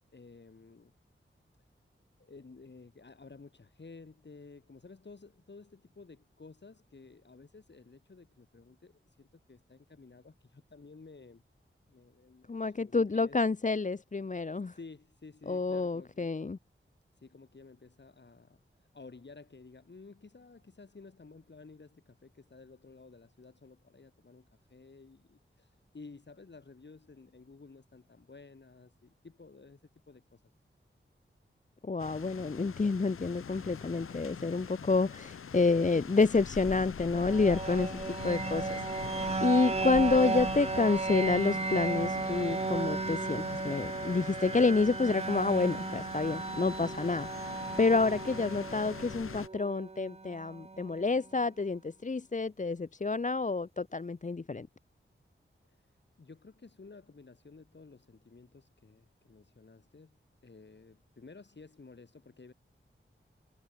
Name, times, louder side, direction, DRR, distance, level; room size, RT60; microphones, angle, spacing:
voice 1, 0.1-0.9 2.2-11.4 11.8-13.4 14.7-16.3 17.2-18.6 18.9-29.8 30.1-30.4 56.2-62.5, left 4 dB, 55° left, 3.6 m, -53 dB
voice 2, 12.5-14.7 15.5-16.6 31.8-54.7, left 4 dB, 35° left, 0.8 m, -29 dB
sound 1, 32.0-49.5, left 7 dB, 90° left, 0.8 m, -43 dB
sound 2, 37.1-51.1, right 3 dB, 30° right, 0.7 m, -35 dB
wide cardioid pair, 65°, 21 cm